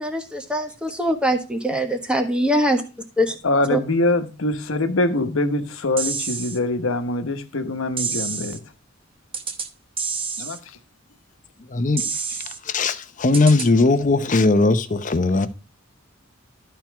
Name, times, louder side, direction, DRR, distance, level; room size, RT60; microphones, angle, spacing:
voice 1, 0.0-2.8 3.2-3.3 3.7-3.8, equal, 5° right, 1.3 m, -22 dB
voice 2, 3.4-8.6 10.4-10.8, left 2 dB, 85° left, 1.1 m, -23 dB
sound 1, 6.0-6.6 8.0-8.6 9.3-9.7 10.0-10.6 12.0-12.6 13.3-13.7, right 5 dB, 30° right, 1.0 m, -28 dB
voice 3, 11.7-12.0 12.3-12.4 12.7-15.5, left 3 dB, 40° left, 0.8 m, -19 dB
12.5 x 4.5 x 4.6 m
head